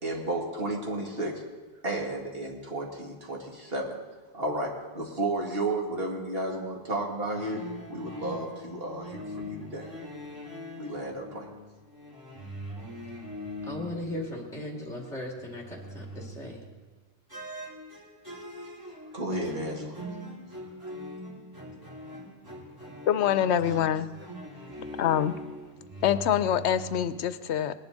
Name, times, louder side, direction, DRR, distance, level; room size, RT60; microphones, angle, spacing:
voice 1, 0.0-1.4 1.8-4.0 4.3-7.6 7.9-9.9 10.8-11.5 19.1-20.0 20.8-20.9 21.8-21.9, right 2 dB, 55° right, -1 dB, 2.2 m, -32 dB
sound 1, 7.3-14.9 15.2-16.7 17.3-27.1, equal, 20° right, 2.9 m, -42 dB
voice 2, 13.7-16.6, left 1 dB, ahead, -1 dB, 2.0 m, -37 dB
voice 3, 23.1-24.1 25.0-25.3 26.0-27.7, left 10 dB, 75° left, 13 dB, 0.9 m, -25 dB
20.0 x 10.5 x 3.9 m, 1.2 s
omnidirectional pair, 1.2 m